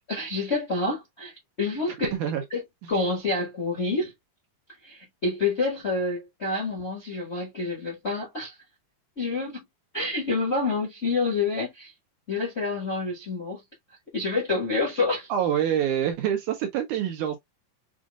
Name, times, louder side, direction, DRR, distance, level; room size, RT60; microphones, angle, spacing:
voice 1, 0.1-2.1 2.5-2.6 2.9-4.1 4.8-8.6 9.2-9.6 9.9-11.9 12.3-13.6 14.1-15.3, left 3 dB, 35° left, 1.0 m, -28 dB
voice 2, 2.1-2.4 15.3-17.4, right 9 dB, 75° right, 2.0 m, -26 dB
6.2 x 2.5 x 2.4 m
omnidirectional pair, 4.0 m